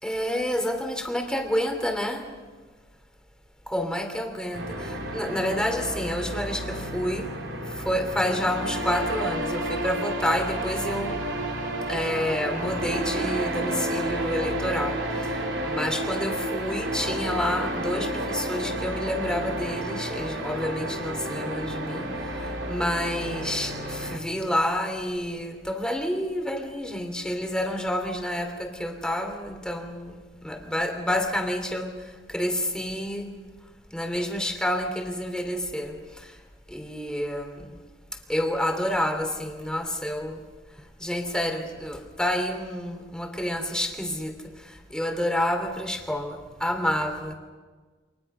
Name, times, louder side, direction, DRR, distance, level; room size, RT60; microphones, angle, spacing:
voice 1, 0.0-2.2 3.7-4.6 5.1-7.3 7.8-11.2 11.9-15.0 15.6-22.1 22.7-30.1 30.4-31.9 32.3-33.3 33.9-35.9 36.7-37.6 38.3-40.4 41.0-44.3 44.9-47.3, left 1 dB, 5° left, 4 dB, 2.9 m, -28 dB
sound 1, 4.5-24.2, right 1 dB, 90° right, 4.0 m, -31 dB
29.5 x 27.0 x 5.6 m, 1.4 s
head